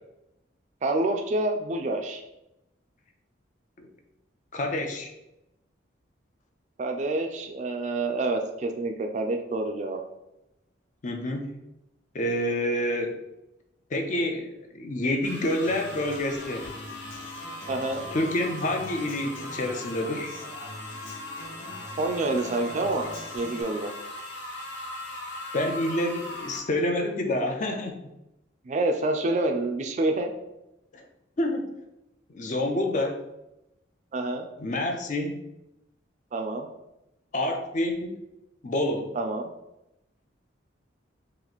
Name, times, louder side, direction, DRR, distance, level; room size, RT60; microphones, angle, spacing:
voice 1, 0.8-2.2 6.8-10.0 17.7-18.0 22.0-23.9 28.7-30.3 34.1-34.5 36.3-36.7 39.1-39.4, right 2 dB, 35° right, 4 dB, 0.3 m, -27 dB
voice 2, 4.5-5.1 11.0-11.5 12.1-13.2 13.9-16.7 18.1-20.3 25.5-28.0 30.9-31.0 31.4-31.8 32.3-33.3 34.6-35.4 37.3-38.2 38.6-39.2, left 1 dB, 40° left, 4 dB, 0.4 m, -28 dB
sound 1, 15.2-26.6, left 1 dB, 65° left, 0.7 m, -39 dB
Human voice / Acoustic guitar, 15.6-23.6, left 1 dB, 85° left, 1.1 m, -44 dB
3.0 x 2.5 x 4.0 m, 0.90 s
head